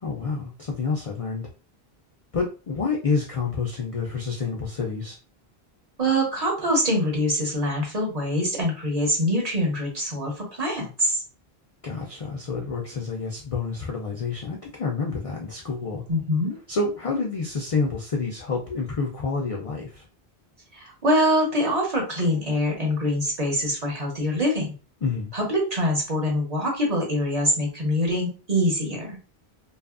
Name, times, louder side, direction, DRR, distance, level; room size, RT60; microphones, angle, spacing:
voice 1, 0.0-1.5 2.3-5.2 11.8-16.0 16.7-20.1 25.0-25.3, left 4 dB, 50° left, -1 dB, 0.4 m, -28 dB
voice 2, 6.0-11.2 16.1-16.6 20.7-24.7 25.3-29.2, equal, 40° right, -1 dB, 0.9 m, -24 dB
2.6 x 2.4 x 2.4 m, 0.34 s
omnidirectional pair, 1.1 m